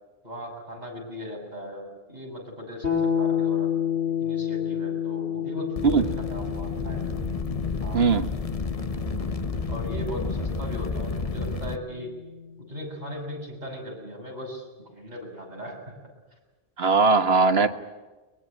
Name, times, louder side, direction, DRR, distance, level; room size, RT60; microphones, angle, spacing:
voice 1, 0.2-3.7 4.2-6.0 6.3-7.2 7.8-8.1 9.7-12.2 12.6-16.0, equal, 40° right, 0 dB, 7.4 m, -38 dB
sound 1, 2.8-12.6, left 8 dB, 90° left, 3.3 m, -31 dB
sound 2, 5.8-11.8, left 4 dB, 35° left, 1.1 m, -30 dB
voice 2, 7.9-8.3 16.8-17.7, right 4 dB, 65° right, 9 dB, 1.7 m, -19 dB
22.5 x 22.0 x 9.9 m, 1.2 s
omnidirectional pair, 1.1 m